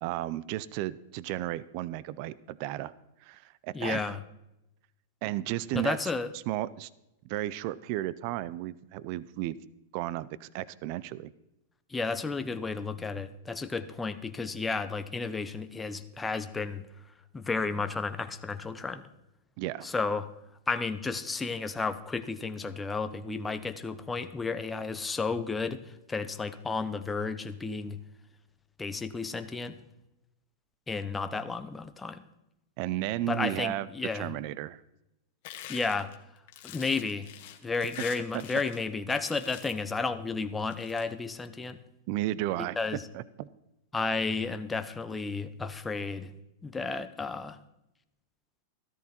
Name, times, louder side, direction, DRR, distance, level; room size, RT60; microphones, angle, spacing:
voice 1, 0.0-2.9 3.2-4.2 5.2-6.0 6.5-6.9 7.2-9.6 9.9-11.3 19.6-19.9 32.8-34.8 42.1-42.8 43.1-43.5, right 15 dB, 50° right, 19 dB, 0.6 m, -33 dB
voice 2, 3.7-4.2 5.7-6.3 11.9-16.9 17.3-19.0 19.8-20.3 20.7-28.0 28.8-29.8 30.9-32.2 33.3-34.3 35.7-36.1 36.6-37.3 37.6-41.8 42.8-43.0 43.9-46.4 46.6-47.6, left 4 dB, 10° left, 10 dB, 0.9 m, -32 dB
sound 1, 35.4-38.8 39.1-39.9 40.6-41.0, left 12 dB, 55° left, 1.8 m, -45 dB
13.5 x 13.0 x 4.4 m, 0.88 s
hypercardioid pair, 130°, 0 cm